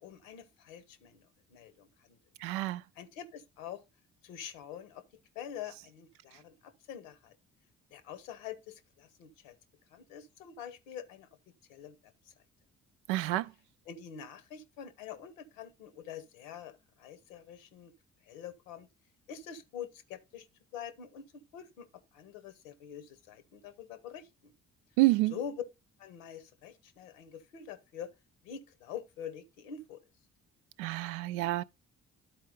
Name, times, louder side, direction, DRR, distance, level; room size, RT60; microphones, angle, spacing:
voice 1, 0.0-2.2 3.0-3.8 4.2-5.0 5.3-7.3 7.9-9.5 9.9-11.3 11.7-11.9 12.3-12.4 13.9-17.9 18.3-18.9 19.3-20.5 20.7-21.3 21.5-21.9 22.1-24.5 25.3-25.5 26.0-28.1 28.4-30.0, left 8 dB, 70° left, 1.0 m, -45 dB
voice 2, 2.4-2.8 13.1-13.5 25.0-25.3 30.8-31.6, right 19 dB, 65° right, 0.5 m, -28 dB
11.5 x 4.5 x 3.8 m
figure-of-eight pair, 40°, 41 cm